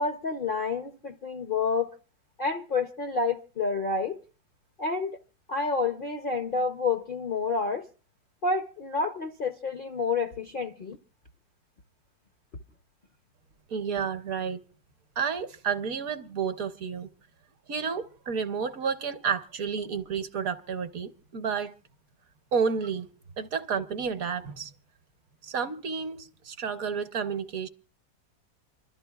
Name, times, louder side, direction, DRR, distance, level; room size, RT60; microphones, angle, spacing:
voice 1, 0.0-1.9 2.4-4.2 4.8-5.2 5.5-7.9 8.4-11.0, left 4 dB, 50° left, 0.6 m, -29 dB
voice 2, 13.7-14.6 15.2-17.1 17.7-21.7 22.5-23.1 23.4-24.7 25.4-27.7, right 6 dB, 65° right, 1.2 m, -31 dB
26.5 x 12.5 x 2.3 m
omnidirectional pair, 1.7 m